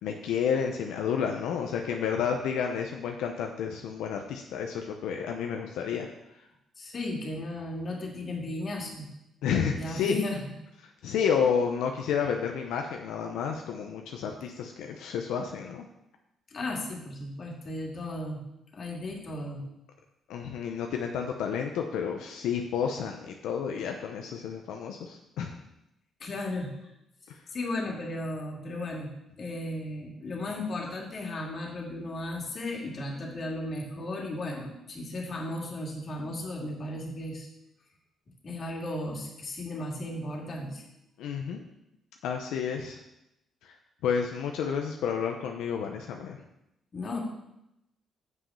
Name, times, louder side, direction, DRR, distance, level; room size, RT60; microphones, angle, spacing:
voice 1, 0.0-6.1 9.4-10.2 11.0-15.8 20.3-25.5 27.3-27.4 41.2-41.6 42.2-43.0 43.6-43.7 44.0-46.4, left 7 dB, 90° left, 3 dB, 0.7 m, -30 dB
voice 2, 6.8-9.1 9.8-10.5 14.2-14.3 16.5-18.4 18.7-19.6 26.2-26.7 27.5-29.1 29.4-37.5 38.4-40.8 46.9-47.2, left 1 dB, 45° left, 0 dB, 2.3 m, -35 dB
7.7 x 6.0 x 5.5 m, 0.85 s
cardioid pair, 90°, 0 cm